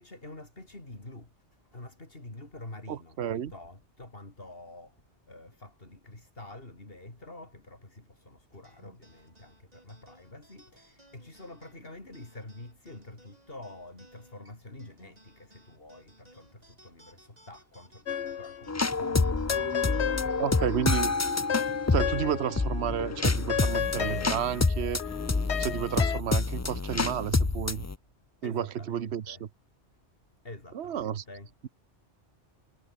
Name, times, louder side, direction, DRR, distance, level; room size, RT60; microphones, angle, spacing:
voice 1, 0.0-1.3 1.7-20.7 22.0-22.1 28.4-29.4 30.4-31.5, left 2 dB, 55° left, 4.9 m, -47 dB
voice 2, 2.9-3.5 20.4-21.1 21.9-25.0 25.6-27.9 28.4-29.4 30.7-31.2, right 9 dB, 70° right, 1.2 m, -31 dB
sound 1, 8.6-23.4, right 1 dB, 35° right, 6.1 m, -60 dB
sound 2, 18.1-18.7 19.0-22.7 23.0-26.2, left 8 dB, 75° left, 1.2 m, -33 dB
sound 3, 18.7-28.0, left 3 dB, 20° left, 0.4 m, -28 dB
omnidirectional pair, 1.2 m